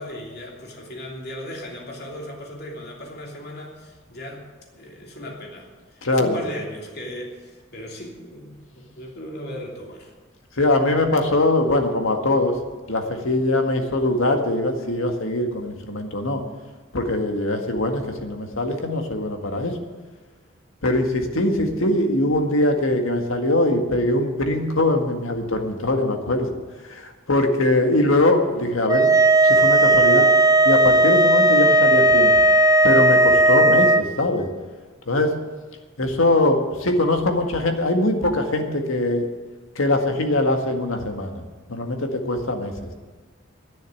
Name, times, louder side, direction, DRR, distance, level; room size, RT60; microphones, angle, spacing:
voice 1, 0.0-4.4 4.7-10.1, equal, 50° left, 0 dB, 3.0 m, -37 dB
voice 2, 6.0-6.4 10.6-12.6 12.9-16.4 16.9-19.7 20.8-26.5 26.8-29.1 29.4-30.3 30.6-32.3 32.8-34.5 35.1-35.3 36.0-39.3 39.8-41.4 41.7-42.7, left 1 dB, 80° left, 5 dB, 1.9 m, -22 dB
sound 1, 28.9-34.0, right 1 dB, 15° right, 0.8 m, -15 dB
10.5 x 10.5 x 9.7 m, 1.4 s
head